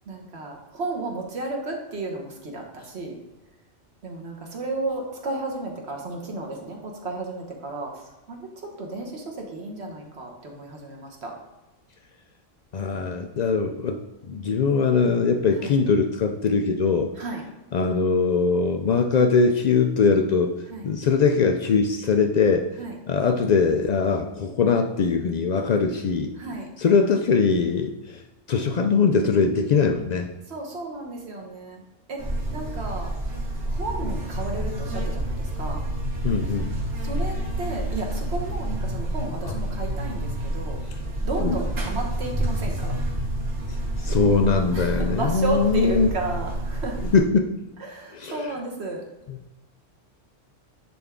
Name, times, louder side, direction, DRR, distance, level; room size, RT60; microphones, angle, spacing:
voice 1, 0.1-3.2 4.0-8.0 8.3-11.3 15.6-15.7 17.2-17.4 20.7-20.8 22.8-23.0 26.4-26.7 30.5-31.8 32.1-32.2 32.5-33.1 33.7-35.8 37.0-40.8 41.2-42.9 44.7-47.0 47.8-49.0, right 2 dB, 60° right, 1 dB, 1.5 m, -33 dB
voice 2, 12.7-17.1 17.7-20.5 20.8-22.7 23.1-26.3 26.8-28.2 28.5-30.3 36.2-36.7 39.4-39.6 41.4-41.6 43.9-46.1 47.0-47.5 48.1-48.5 49.3-49.4, left 5 dB, 85° left, 5 dB, 0.3 m, -21 dB
Buzz, 32.2-47.2, right 1 dB, 90° right, 2.5 m, -28 dB
10.0 x 3.4 x 3.6 m, 1.0 s
omnidirectional pair, 1.3 m